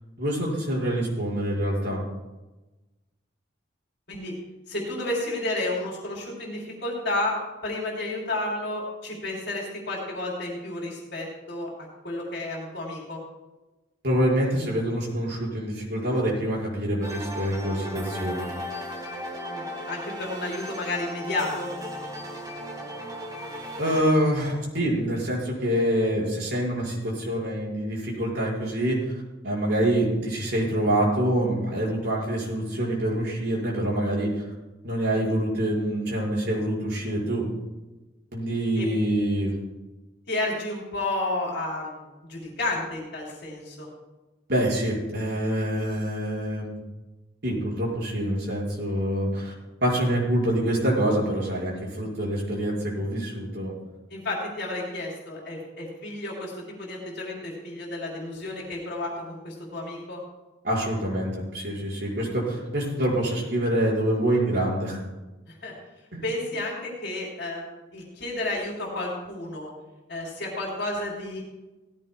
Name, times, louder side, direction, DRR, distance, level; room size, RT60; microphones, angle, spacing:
voice 1, 0.2-2.0 14.0-18.5 23.8-34.4 34.8-37.5 38.3-39.5 44.5-46.8 47.4-49.5 49.8-53.7 60.6-65.0 66.1-66.2, right 1 dB, 60° right, -4 dB, 5.3 m, -26 dB
voice 2, 4.7-7.4 7.6-11.7 12.0-13.2 19.5-21.7 38.8-38.9 40.3-43.9 54.1-60.2 65.5-65.7 66.2-69.7 70.1-71.4, left 2 dB, 60° left, -4 dB, 3.5 m, -31 dB
sound 1, 17.0-24.0, equal, 20° right, 1.5 m, -36 dB
17.5 x 15.0 x 2.3 m, 1.1 s
head